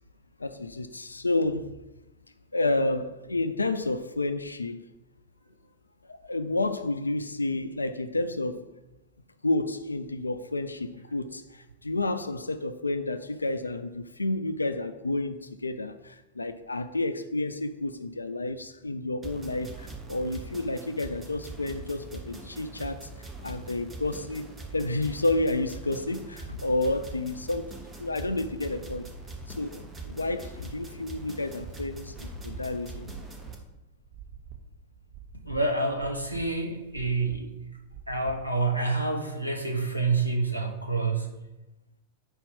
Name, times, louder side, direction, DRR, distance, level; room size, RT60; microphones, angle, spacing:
voice 1, 0.4-1.7 2.5-4.8 6.0-8.6 9.4-27.7 28.0-29.1 29.5-33.2, left 2 dB, 80° left, 11 dB, 0.3 m, -30 dB
sound 1, 19.2-33.5, right 2 dB, 15° right, 0.9 m, -42 dB
sound 2, 31.5-38.9, right 8 dB, 40° right, 0.7 m, -47 dB
voice 2, 35.4-37.5 38.1-41.4, right 3 dB, 90° right, 2 dB, 0.7 m, -28 dB
4.6 x 4.4 x 5.2 m, 0.99 s
figure-of-eight pair, 90°, 0 cm